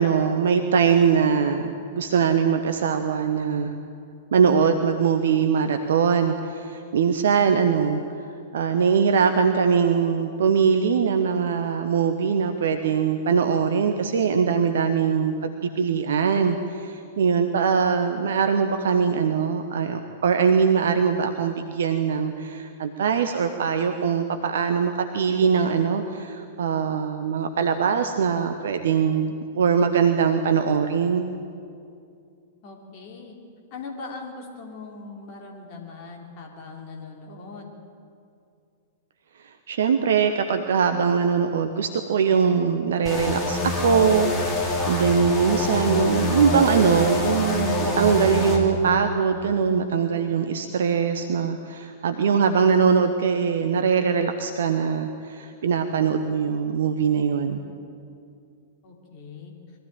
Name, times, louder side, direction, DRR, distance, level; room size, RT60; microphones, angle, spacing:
voice 1, 0.0-3.7 4.3-8.0 8.5-31.3 39.7-57.6, right 6 dB, 60° right, 7 dB, 1.2 m, -22 dB
voice 2, 32.6-33.3 33.7-37.7 58.8-59.5, left 4 dB, 40° left, 0 dB, 3.2 m, -40 dB
sound 1, 43.1-48.6, left 2 dB, 15° left, 4.8 m, -25 dB
23.0 x 15.0 x 9.0 m, 2.4 s
figure-of-eight pair, 100°, 0 cm